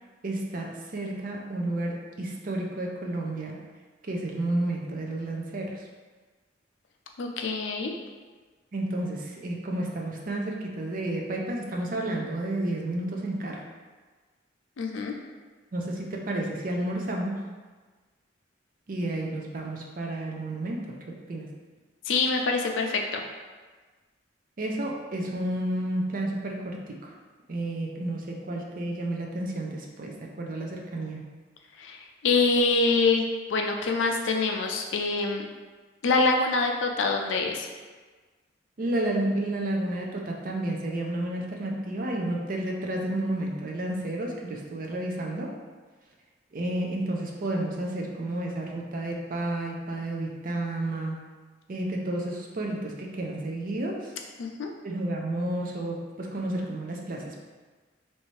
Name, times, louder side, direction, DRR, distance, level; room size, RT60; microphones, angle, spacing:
voice 1, 0.2-3.6 4.1-5.9 8.7-13.6 15.7-17.4 18.9-21.5 24.6-27.1 27.5-31.2 38.8-45.5 46.5-51.2 51.7-54.1 54.8-57.4, right 1 dB, 45° right, 0 dB, 0.4 m, -31 dB
voice 2, 7.2-8.0 14.8-15.1 22.1-23.2 31.8-32.0 32.2-33.2 33.5-35.5 36.0-37.7 54.4-54.7, left 3 dB, 80° left, 2 dB, 0.4 m, -25 dB
3.1 x 2.7 x 3.1 m, 1.4 s
head